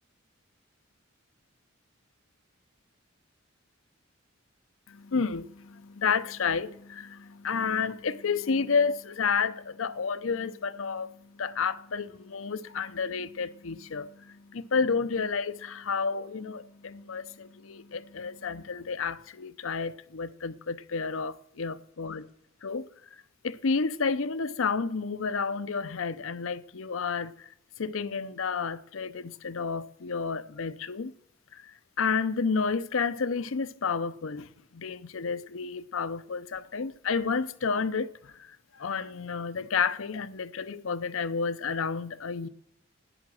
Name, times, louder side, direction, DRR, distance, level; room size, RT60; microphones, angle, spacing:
voice 1, 4.9-11.1 11.4-22.2 22.6-22.9 23.4-27.5 27.8-31.1 31.5-31.7 32.0-42.5, left 5 dB, 75° left, 0.6 m, -31 dB
11.0 x 9.5 x 7.6 m
head